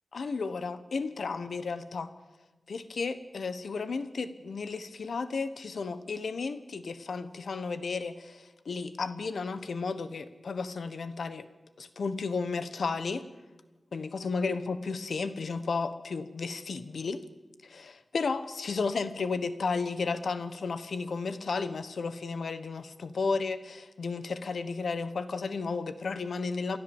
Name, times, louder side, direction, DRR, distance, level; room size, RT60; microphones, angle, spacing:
voice 1, 0.1-2.1 2.7-11.4 11.8-13.2 13.9-17.2 17.6-26.8, left 4 dB, 90° left, 12 dB, 1.1 m, -33 dB
29.0 x 12.5 x 7.2 m, 1.2 s
wide cardioid pair, 90°, 0 cm